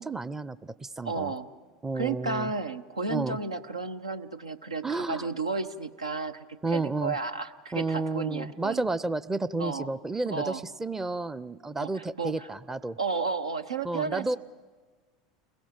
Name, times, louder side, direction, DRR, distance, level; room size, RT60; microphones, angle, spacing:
voice 1, 0.0-1.3 1.8-2.5 3.1-3.4 4.8-5.3 6.6-7.2 7.7-13.0 13.8-14.4, right 3 dB, 10° right, 18 dB, 0.6 m, -31 dB
voice 2, 1.0-1.5 1.9-8.8 9.6-9.9 10.3-10.6 11.8-12.5 13.0-14.4, right 4 dB, 85° right, 11 dB, 0.8 m, -33 dB
29.5 x 21.5 x 5.2 m, 1.4 s
figure-of-eight pair, 80°, 3 cm